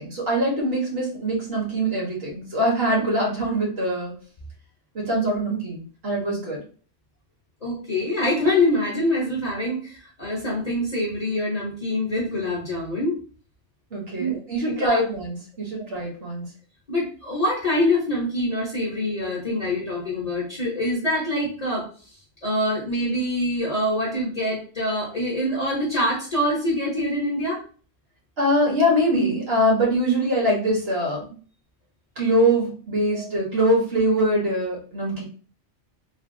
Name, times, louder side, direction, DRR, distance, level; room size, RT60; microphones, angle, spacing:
voice 1, 0.0-4.1 4.9-6.6 13.9-16.4 28.4-31.3 32.2-35.2, equal, 55° right, -3 dB, 1.3 m, -23 dB
voice 2, 7.6-13.2 14.2-14.4 14.8-15.0 16.9-21.8 22.4-27.6 33.1-33.3, left 1 dB, 35° left, -4 dB, 0.8 m, -25 dB
3.3 x 2.3 x 2.5 m, 0.41 s
omnidirectional pair, 1.3 m